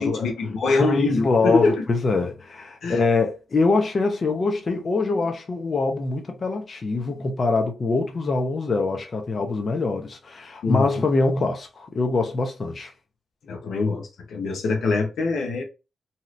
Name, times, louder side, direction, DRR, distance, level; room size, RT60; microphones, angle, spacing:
voice 1, 0.0-1.8 2.8-3.0 10.6-11.0 13.5-15.6, left 3 dB, 80° left, 0.8 m, -23 dB
voice 2, 0.7-12.9, left 3 dB, 50° left, 0.6 m, -24 dB
2.8 x 2.4 x 3.1 m
cardioid pair, 65°, 0 cm